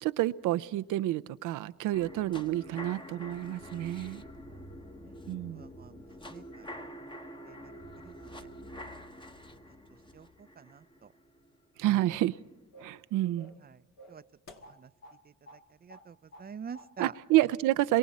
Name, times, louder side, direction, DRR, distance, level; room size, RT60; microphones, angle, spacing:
voice 1, 0.0-4.2 5.3-5.6 11.8-12.4 12.8-13.5 17.0-18.0, right 15 dB, 90° right, 0.7 m, -29 dB
sound 1, 1.9-12.0 12.4-12.5, equal, 15° left, 1.2 m, -47 dB
voice 2, 5.5-6.7 7.5-7.7 8.0-8.5 10.1-10.3 10.6-11.1 11.8-12.0 13.6-13.8 14.1-14.2 14.7-14.9 15.2-17.1, right 7 dB, 30° right, 0.6 m, -48 dB
sound 2, 12.1-12.4 12.7-13.0 13.4-13.7 14.0-15.2 15.5-15.6 15.9-16.5 16.7-16.9, equal, 60° left, 2.2 m, -52 dB
27.0 x 23.0 x 4.2 m
cardioid pair, 90°, 30 cm